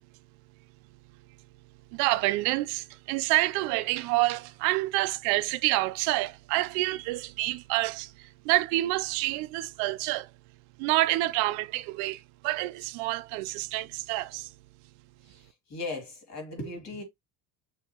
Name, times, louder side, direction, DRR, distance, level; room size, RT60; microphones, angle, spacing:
voice 1, 1.9-10.3 10.8-14.5, right 18 dB, 75° right, 0.5 m, -28 dB
voice 2, 15.2-17.0, left 2 dB, 40° left, 2.5 m, -38 dB
6.4 x 2.9 x 2.8 m
cardioid pair, 160°, 39 cm